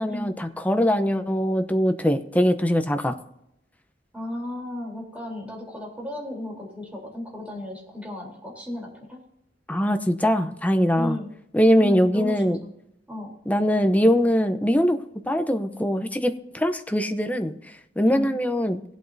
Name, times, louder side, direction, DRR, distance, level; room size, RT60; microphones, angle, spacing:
voice 1, 0.0-3.1 9.7-11.2 11.5-12.6 13.5-15.0 15.2-17.5 18.0-18.8, equal, 10° left, 8 dB, 0.7 m, -22 dB
voice 2, 4.1-9.2 10.9-11.3 11.8-12.7 13.1-13.4 18.0-18.3, left 1 dB, 10° right, -3 dB, 3.5 m, -34 dB
19.0 x 8.3 x 2.7 m, 0.82 s
head